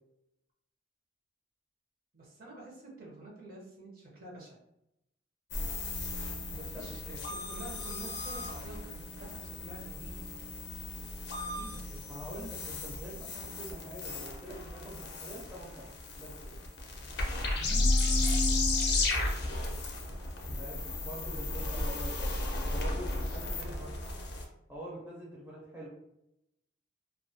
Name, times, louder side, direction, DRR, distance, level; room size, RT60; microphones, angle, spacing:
voice 1, 2.1-4.6 6.4-10.5 11.3-12.1 17.4-18.6 23.2-24.0, right 2 dB, 50° right, -3 dB, 0.7 m, -49 dB
sound 1, 5.5-24.4, left 2 dB, 55° left, 0.4 m, -34 dB
voice 2, 6.4-6.9 12.1-16.6 20.6-23.8 24.7-25.9, equal, 10° right, -6 dB, 0.5 m, -45 dB
2.3 x 2.2 x 2.6 m, 0.84 s
head